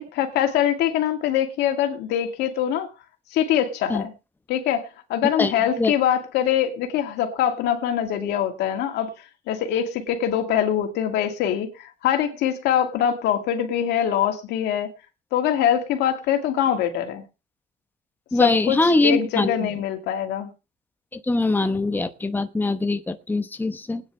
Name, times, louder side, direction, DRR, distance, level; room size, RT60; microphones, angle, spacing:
voice 1, 0.0-2.9 3.3-4.1 4.5-9.1 9.5-14.9 15.3-17.2 18.4-20.5, left 10 dB, 85° left, 2.5 m, -23 dB
voice 2, 5.4-5.9 18.3-19.7 21.1-24.0, left 2 dB, 10° left, 1.0 m, -22 dB
20.5 x 9.8 x 3.3 m
cardioid pair, 110°, 17 cm